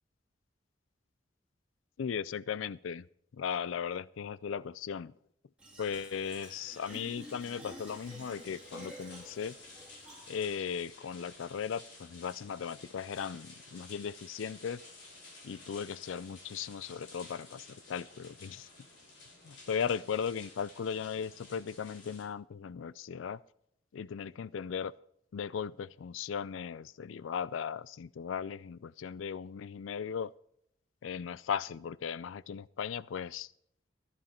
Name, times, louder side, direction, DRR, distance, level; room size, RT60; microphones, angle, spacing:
voice 1, 2.0-3.0 3.3-5.1 5.8-9.6 10.3-14.8 15.4-18.7 19.4-23.4 23.9-24.9 25.3-30.3 31.0-33.5, left 7 dB, 80° left, 20 dB, 0.4 m, -37 dB
Fill (with liquid), 5.6-10.6, equal, 5° right, 3.2 m, -50 dB
sound 1, 6.2-22.2, left 2 dB, 60° left, 5.4 m, -53 dB
14.5 x 11.0 x 4.3 m, 0.70 s
head